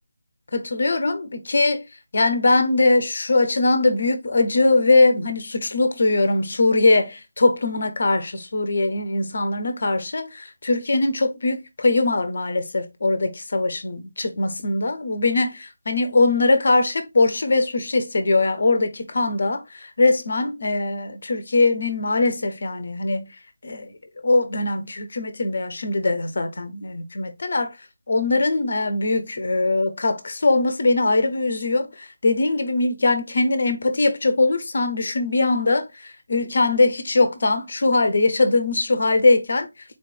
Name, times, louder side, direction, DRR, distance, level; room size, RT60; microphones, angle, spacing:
voice 1, 0.5-1.8 2.1-23.3 23.6-23.9 24.2-27.7 28.1-39.7, left 2 dB, 55° left, 0.8 m, -21 dB
4.1 x 3.2 x 3.7 m
figure-of-eight pair, 155°, 0 cm